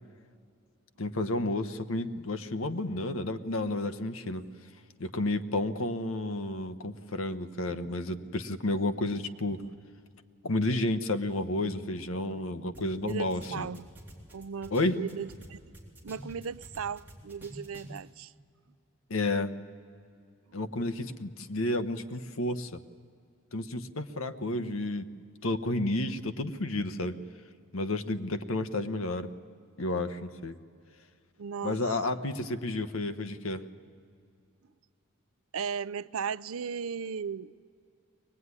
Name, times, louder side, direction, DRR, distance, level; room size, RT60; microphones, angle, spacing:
voice 1, 1.0-4.5 5.0-9.6 10.4-13.7 14.7-15.0 19.1-19.5 20.5-22.8 23.5-25.1 25.4-27.2 27.7-29.3 29.8-30.6 31.6-33.7, left 2 dB, 80° left, 1.1 m, -31 dB
sound 1, 12.7-12.8 13.1-15.5 15.7-18.0, right 1 dB, 10° right, 3.6 m, -48 dB
voice 2, 13.0-13.9 14.3-15.6 16.0-18.3 31.4-32.0 35.5-37.5, right 6 dB, 85° right, 0.5 m, -36 dB
22.5 x 19.5 x 9.7 m
head